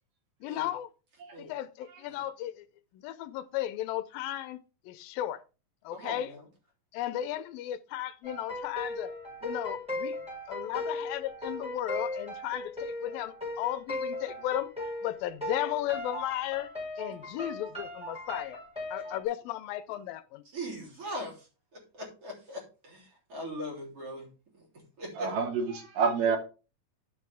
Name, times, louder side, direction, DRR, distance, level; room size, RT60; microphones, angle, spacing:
voice 1, 0.4-0.9 1.4-2.7 2.9-4.6 4.9-5.4 5.8-6.3 6.9-9.1 9.4-10.2 10.5-14.7 15.0-16.7 17.0-18.6 18.9-20.4, left 13 dB, 90° left, 2.4 m, -35 dB
voice 2, 5.9-6.4 19.0-19.1 20.5-24.3 24.5-25.3, equal, 40° right, 4.1 m, -41 dB
sound 1, 8.2-19.2, left 2 dB, ahead, 4.6 m, -38 dB
voice 3, 25.2-26.4, right 5 dB, 70° right, 3.2 m, -28 dB
10.5 x 6.0 x 3.5 m
omnidirectional pair, 4.0 m